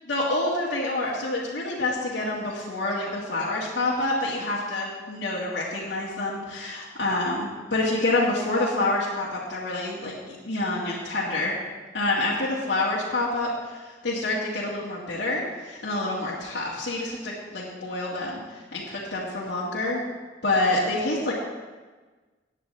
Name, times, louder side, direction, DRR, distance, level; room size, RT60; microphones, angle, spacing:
voice 1, 0.1-11.5 11.9-13.5 14.0-18.3 18.7-20.0 20.4-21.3, left 2 dB, 80° left, -7 dB, 2.0 m, -27 dB
16.0 x 9.8 x 3.4 m, 1.3 s
head